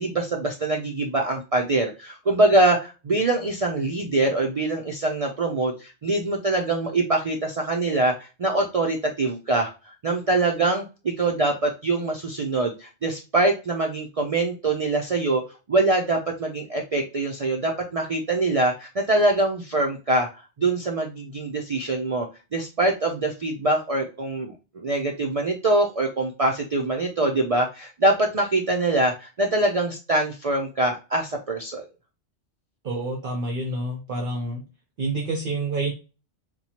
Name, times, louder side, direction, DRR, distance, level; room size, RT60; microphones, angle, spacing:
voice 1, 0.0-15.4 15.7-20.3 20.6-22.3 22.5-31.8, right 2 dB, 70° right, 0 dB, 0.3 m, -24 dB
voice 2, 32.8-34.6 35.0-35.9, right 2 dB, 50° right, 1 dB, 0.8 m, -28 dB
4.3 x 2.2 x 2.8 m, 0.31 s
omnidirectional pair, 1.3 m